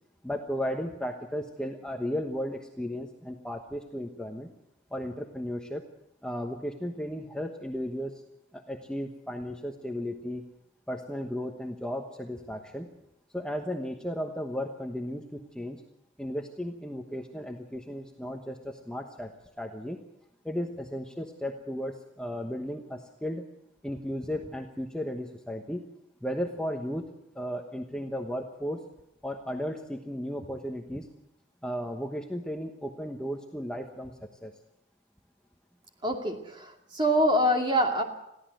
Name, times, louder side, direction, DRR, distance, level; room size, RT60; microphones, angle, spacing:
voice 1, 0.2-4.5 4.9-5.8 6.2-8.2 8.5-10.4 10.9-12.9 13.3-15.8 16.2-19.3 19.6-20.0 20.4-23.5 23.8-25.9 26.2-27.1 27.3-28.9 29.2-31.1 31.6-34.5, equal, 5° left, 2 dB, 1.1 m, -35 dB
voice 2, 36.0-38.0, equal, 25° right, 3 dB, 2.4 m, -25 dB
22.0 x 15.5 x 7.7 m, 0.84 s
head